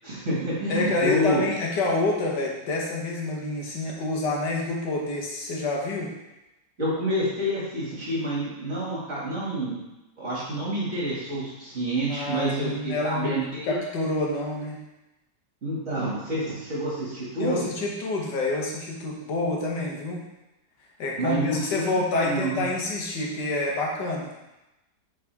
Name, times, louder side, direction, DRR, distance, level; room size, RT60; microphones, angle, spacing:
voice 1, 0.0-1.5 6.8-9.8 10.2-13.8 15.6-17.7 21.2-22.6, right 1 dB, 45° right, -7 dB, 2.5 m, -28 dB
voice 2, 0.7-6.1 12.1-13.4 13.6-14.8 17.4-20.2 21.0-24.3, left 2 dB, 90° left, -2 dB, 1.8 m, -27 dB
7.3 x 4.2 x 3.5 m, 0.97 s
omnidirectional pair, 1.8 m